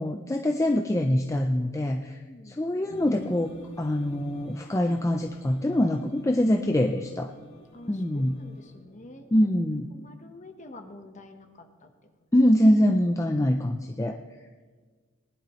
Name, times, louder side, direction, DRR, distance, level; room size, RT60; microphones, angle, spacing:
voice 1, 0.0-2.2 2.5-7.3 7.9-8.4 9.3-9.9 12.3-14.2, left 1 dB, 15° left, 4 dB, 0.5 m, -24 dB
voice 2, 2.2-2.6 7.7-9.3 9.9-11.9, left 2 dB, 35° left, 5 dB, 1.2 m, -48 dB
sound 1, 2.9-10.6, right 1 dB, 55° left, 2.5 m, -48 dB
20.0 x 11.0 x 3.2 m, 1.4 s
head